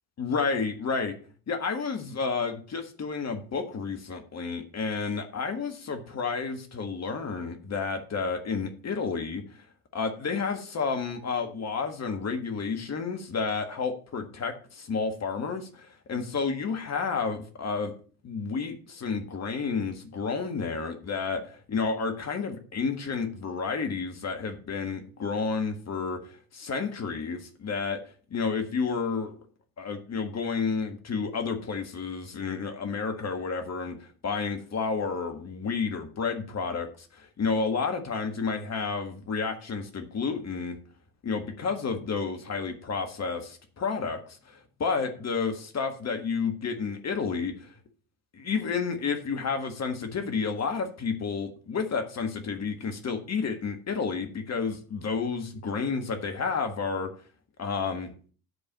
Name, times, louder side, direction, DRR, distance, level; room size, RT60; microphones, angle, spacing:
voice 1, 0.2-1.1 1.5-9.4 9.9-17.9 18.2-28.0 28.3-29.4 29.8-40.8 41.2-47.7 48.3-57.1 57.6-58.1, left 5 dB, 35° left, 6 dB, 1.6 m, -31 dB
8.0 x 4.8 x 7.3 m, 0.41 s
figure-of-eight pair, 55°, 46 cm